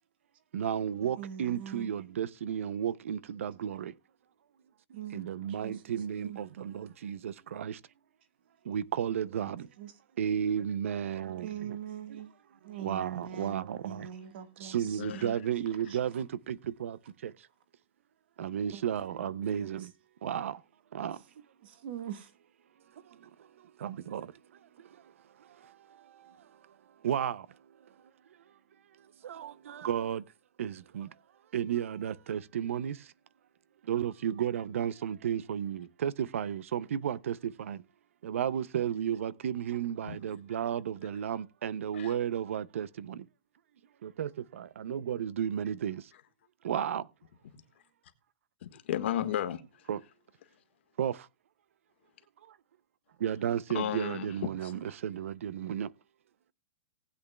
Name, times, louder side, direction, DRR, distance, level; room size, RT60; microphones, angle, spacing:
voice 1, 0.5-3.9 4.9-7.8 8.6-9.7 10.2-11.8 12.6-14.1 14.6-17.5 18.4-19.9 20.2-20.6 20.9-21.4 23.0-24.3 24.6-25.1 25.4-26.8 27.0-27.6 29.2-30.2 30.6-31.1 31.5-33.1 33.8-37.8 38.2-43.3 44.0-46.1 46.6-47.1 49.9-50.0 51.0-51.3 52.4-52.6 53.2-55.9, right 9 dB, 80° right, 0.5 m, -34 dB
voice 2, 1.2-1.9 4.9-6.4 9.4-9.5 9.8-9.9 10.4-10.6 11.4-12.3 12.6-15.3 15.9-16.0 18.7-18.8 19.5-19.7 21.6-22.3, right 9 dB, 50° right, 1.4 m, -43 dB
voice 3, 48.7-49.9 53.7-54.3 54.6-54.7, left 11 dB, 60° left, 1.4 m, -34 dB
19.0 x 8.3 x 2.2 m
hypercardioid pair, 165°, 7 cm